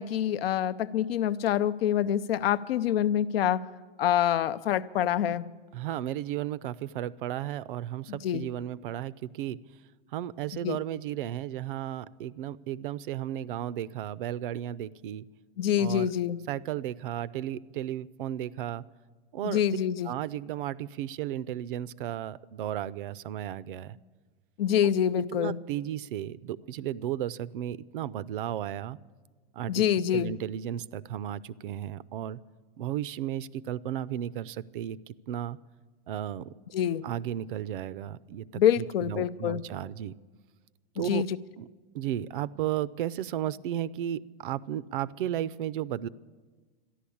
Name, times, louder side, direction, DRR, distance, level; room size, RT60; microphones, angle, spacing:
voice 1, 0.0-3.6 4.0-5.4 8.1-8.4 10.6-10.8 15.6-16.4 19.4-20.1 24.6-25.6 29.7-30.3 36.7-37.0 38.5-39.6 41.1-41.4, left 10 dB, 80° left, 14 dB, 0.7 m, -26 dB
voice 2, 5.7-9.6 10.1-15.2 15.8-16.1 16.5-18.8 19.3-19.6 20.0-24.0 25.3-29.0 29.5-29.8 30.1-32.4 32.8-35.6 36.1-36.5 37.0-40.1 41.0-41.2 41.6-41.7 41.9-46.1, right 11 dB, 65° right, 20 dB, 0.5 m, -34 dB
13.5 x 11.5 x 8.5 m, 1.4 s
supercardioid pair, 170°, 29 cm